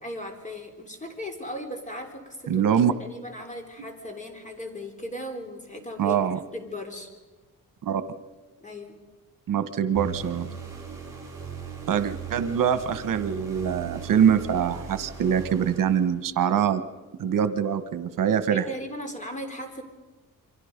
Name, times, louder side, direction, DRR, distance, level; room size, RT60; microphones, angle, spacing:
voice 1, 0.0-2.7 3.0-6.2 6.5-7.1 8.6-9.0 18.5-19.8, equal, 20° left, 5 dB, 3.3 m, -37 dB
voice 2, 2.5-2.9 6.0-6.4 7.8-8.0 9.5-10.5 11.9-16.8 17.2-18.6, right 8 dB, 70° right, 12 dB, 1.2 m, -24 dB
sound 1, 10.0-16.4, right 5 dB, 10° right, 6.3 m, -39 dB
28.5 x 24.0 x 5.2 m, 1.2 s
cardioid pair, 135°, 33 cm